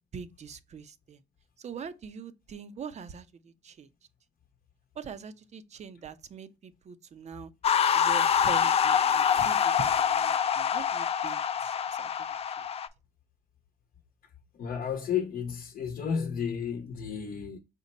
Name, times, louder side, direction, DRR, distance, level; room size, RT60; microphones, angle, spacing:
voice 1, 0.1-1.2 1.6-3.9 4.9-7.5 7.9-12.7, right 6 dB, 45° right, 0.6 m, -43 dB
sound 1, 7.6-12.9, left 8 dB, 40° left, 0.4 m, -25 dB
voice 2, 14.6-17.6, left 7 dB, 60° left, 0.8 m, -32 dB
5.2 x 2.1 x 4.0 m
cardioid pair, 85°, 16 cm